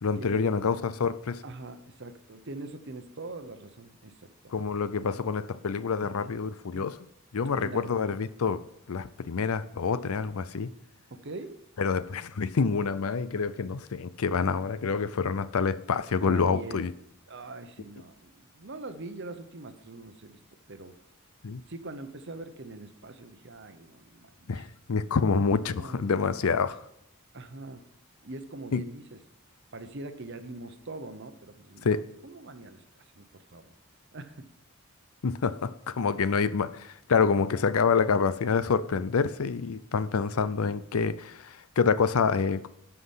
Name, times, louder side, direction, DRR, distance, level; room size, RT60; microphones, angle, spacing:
voice 1, 0.0-1.4 4.5-6.9 7.3-8.6 8.9-10.7 11.8-16.9 21.4-21.6 24.5-26.8 28.7-28.8 31.8-32.0 35.2-42.7, left 5 dB, 80° left, 0.5 m, -27 dB
voice 2, 1.4-4.5 6.0-6.3 6.7-6.9 7.5-7.9 11.1-11.6 16.2-16.9 17.3-20.4 20.7-21.0 21.7-24.7 25.2-26.6 27.3-27.8 28.2-29.2 29.7-31.9 32.2-33.7 34.1-34.5, right 2 dB, 55° right, 0.9 m, -43 dB
12.0 x 5.8 x 5.6 m
head